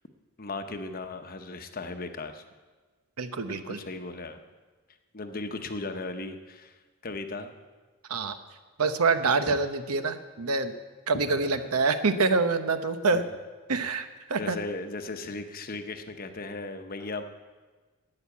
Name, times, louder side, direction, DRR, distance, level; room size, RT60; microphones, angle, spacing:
voice 1, 0.4-2.4 3.5-4.4 5.1-6.8 7.0-7.5 9.5-9.6 11.3-11.7 13.1-13.2 13.7-13.9 14.4-17.2, left 3 dB, 40° left, 7 dB, 0.9 m, -37 dB
voice 2, 3.2-3.8 8.1-8.4 8.8-10.7 11.1-13.2 13.7-14.6, right 4 dB, 80° right, 10 dB, 0.9 m, -26 dB
12.0 x 8.8 x 8.4 m, 1.3 s
head